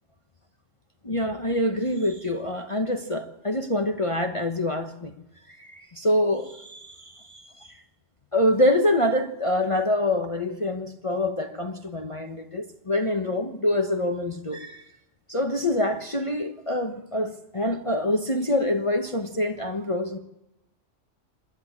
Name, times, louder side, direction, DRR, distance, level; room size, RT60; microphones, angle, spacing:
voice 1, 1.0-5.1 5.6-7.8 8.3-14.8 15.3-20.2, left 1 dB, 25° left, 1.1 m, -26 dB
27.5 x 11.0 x 8.7 m
omnidirectional pair, 1.3 m